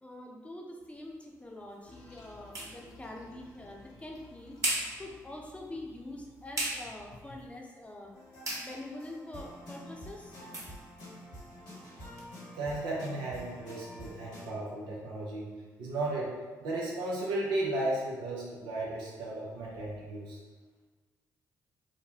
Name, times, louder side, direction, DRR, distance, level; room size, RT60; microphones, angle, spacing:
voice 1, 0.0-4.6 5.0-8.1 8.6-10.4, left 1 dB, 15° left, -1 dB, 0.7 m, -45 dB
sound 1, 0.8-12.3, right 1 dB, 40° right, 1.1 m, -42 dB
Toilet flush, 1.9-7.5, left 3 dB, 55° left, 0.6 m, -55 dB
sound 2, 8.1-14.5, equal, 80° left, 1.4 m, -48 dB
voice 2, 12.5-20.4, right 2 dB, 80° right, -4 dB, 0.7 m, -35 dB
3.1 x 2.1 x 2.8 m, 1.4 s
hypercardioid pair, 45°, 8 cm